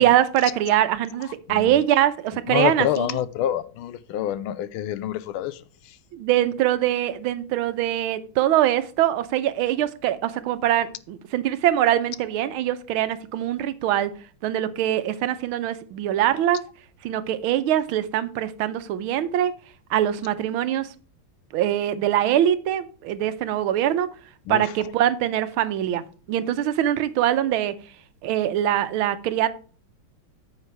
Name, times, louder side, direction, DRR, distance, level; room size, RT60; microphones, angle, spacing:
voice 1, 0.0-3.1 6.1-14.1 14.4-16.6 17.0-19.5 19.9-20.9 21.5-24.1 24.5-27.7 28.2-29.5, right 12 dB, 90° right, 1.5 m, -23 dB
voice 2, 2.5-6.0 24.5-24.7, left 11 dB, 85° left, 1.5 m, -27 dB
9.0 x 6.5 x 3.3 m
omnidirectional pair, 2.3 m